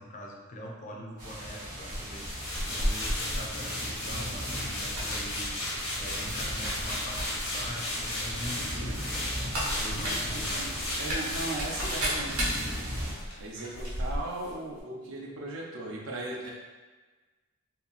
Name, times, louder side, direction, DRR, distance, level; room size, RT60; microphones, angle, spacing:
voice 1, 0.0-9.0 9.8-10.8, equal, 35° left, -1 dB, 0.4 m, -43 dB
sound 1, 1.2-13.1, equal, 40° right, 0.9 m, -38 dB
sound 2, 1.8-13.4 13.7-13.9, left 1 dB, 85° left, 0.9 m, -35 dB
sound 3, 1.8-3.4 4.0-4.2 4.6-5.4 6.0-6.1 6.4-7.3 7.6-7.7 8.4-14.5 14.8-14.9, equal, 90° right, 1.0 m, -34 dB
voice 2, 9.9-10.7 11.0-12.4 13.4-16.5, right 2 dB, 65° right, -2 dB, 0.6 m, -37 dB
2.8 x 2.6 x 2.4 m, 1.3 s
head